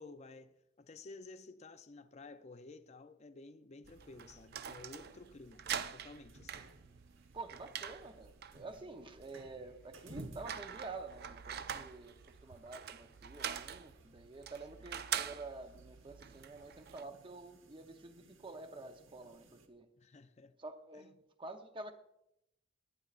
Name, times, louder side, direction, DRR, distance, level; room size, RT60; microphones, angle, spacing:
voice 1, 0.0-6.6 20.0-20.6 21.0-21.1, left 3 dB, 35° left, 0.5 m, -53 dB
sound 1, 3.8-17.1, right 8 dB, 50° right, 0.4 m, -45 dB
sound 2, 3.9-19.7, right 1 dB, 85° right, 1.1 m, -59 dB
voice 2, 7.3-19.9 20.6-21.9, right 3 dB, 25° right, 0.8 m, -49 dB
21.0 x 8.8 x 2.5 m
head